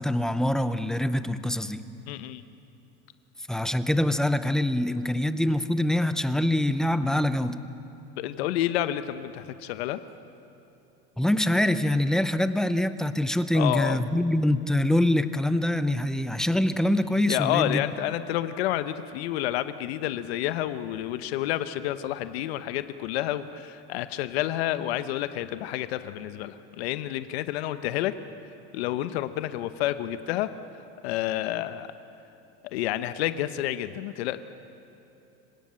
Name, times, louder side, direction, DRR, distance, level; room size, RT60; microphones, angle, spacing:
voice 1, 0.0-1.8 3.5-7.6 11.2-17.8, left 1 dB, ahead, 11 dB, 0.6 m, -24 dB
voice 2, 2.1-2.4 8.2-10.0 13.5-14.0 17.2-28.1 28.7-30.5 31.0-31.9 32.7-34.4, left 13 dB, 90° left, 12 dB, 1.0 m, -29 dB
26.0 x 16.5 x 8.9 m, 2.9 s
supercardioid pair, 145°, 31 cm